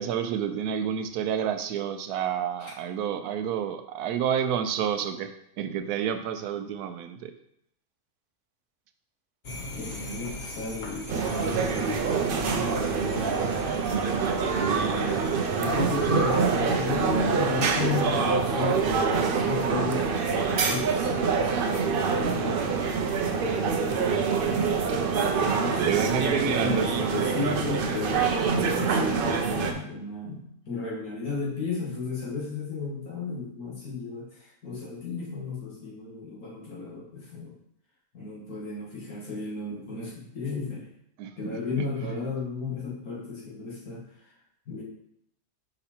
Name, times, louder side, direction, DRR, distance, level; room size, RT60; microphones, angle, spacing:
voice 1, 0.0-5.3 5.6-7.3 24.6-24.7 25.8-27.1 28.6-28.8 41.2-42.1, right 8 dB, 85° right, 8 dB, 1.1 m, -29 dB
sound 1, 9.4-17.2, left 2 dB, 40° left, 0.8 m, -40 dB
voice 2, 9.6-13.5 14.7-15.3 15.6-20.0 20.5-24.6 25.3-37.5 38.1-40.9 41.4-44.1 44.7-44.8, left 4 dB, 75° left, -5 dB, 2.3 m, -34 dB
sound 2, 11.1-29.7, right 5 dB, 55° right, 0.6 m, -25 dB
5.4 x 4.9 x 4.3 m, 0.75 s
omnidirectional pair, 1.6 m